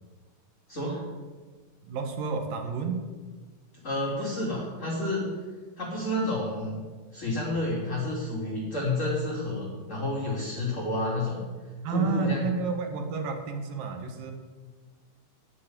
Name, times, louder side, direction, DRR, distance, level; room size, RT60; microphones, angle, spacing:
voice 1, 0.7-1.0 3.8-5.3 5.8-6.8 7.1-11.4 11.9-12.5, left 1 dB, 25° left, -5 dB, 2.4 m, -30 dB
voice 2, 1.8-3.0 11.8-14.3, right 5 dB, 70° right, 5 dB, 3.1 m, -30 dB
9.8 x 9.0 x 9.3 m, 1.4 s
omnidirectional pair, 4.2 m